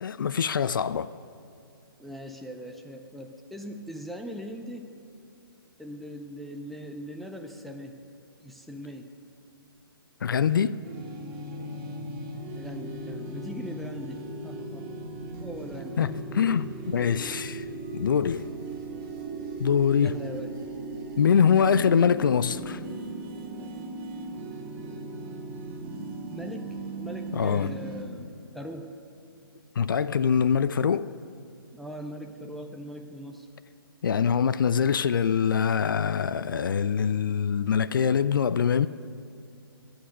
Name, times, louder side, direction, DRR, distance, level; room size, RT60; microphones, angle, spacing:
voice 1, 0.0-1.1 10.2-10.8 16.0-17.6 17.9-18.4 19.6-20.2 21.2-22.8 27.3-27.7 29.8-31.1 34.0-38.9, left 7 dB, 60° left, 0.4 m, -24 dB
voice 2, 2.0-5.0 5.8-8.0 8.4-9.1 12.5-14.9 15.4-16.0 20.0-20.5 26.3-29.0 31.7-33.5, equal, ahead, 0.5 m, -40 dB
sound 1, 10.8-28.0, right 2 dB, 30° right, 1.8 m, -38 dB
21.0 x 8.0 x 5.2 m
figure-of-eight pair, 130°, 12 cm